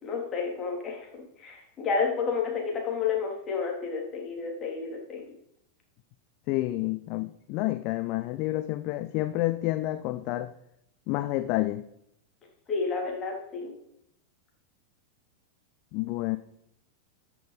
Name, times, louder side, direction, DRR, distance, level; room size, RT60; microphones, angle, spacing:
voice 1, 0.0-1.1 1.4-5.3 12.7-13.7, left 5 dB, 25° left, 3.3 m, -30 dB
voice 2, 6.5-10.5 11.1-11.9 15.9-16.4, left 17 dB, 45° left, 0.4 m, -29 dB
13.0 x 6.2 x 5.2 m
figure-of-eight pair, 90°, 0 cm